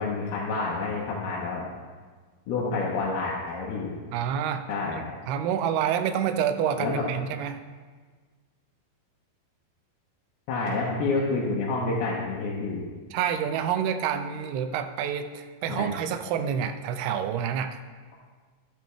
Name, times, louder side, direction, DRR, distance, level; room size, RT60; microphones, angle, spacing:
voice 1, 0.0-1.7 2.5-4.0 4.7-5.0 6.8-7.1 10.5-12.8 15.7-15.9, left 3 dB, 80° left, -5 dB, 3.1 m, -28 dB
voice 2, 4.1-7.6 13.1-17.8, right 8 dB, 85° right, 8 dB, 2.7 m, -28 dB
13.0 x 11.5 x 3.5 m, 1.5 s
omnidirectional pair, 4.4 m